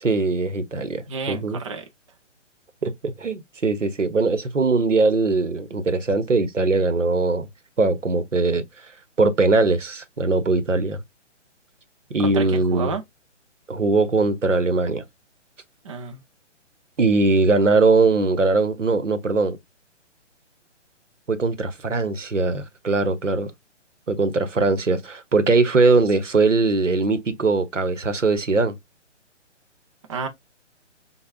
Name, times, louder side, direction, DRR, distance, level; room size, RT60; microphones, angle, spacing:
voice 1, 0.0-1.6 2.8-7.5 7.8-8.6 9.2-11.0 12.1-12.9 13.7-15.0 17.0-19.6 21.3-23.5 24.1-28.7, right 3 dB, 80° right, 1.0 m, -21 dB
voice 2, 1.1-1.9 12.2-13.0 15.8-16.2 30.1-30.3, right 5 dB, 25° right, 0.5 m, -30 dB
6.8 x 2.3 x 2.2 m
figure-of-eight pair, 135°, 37 cm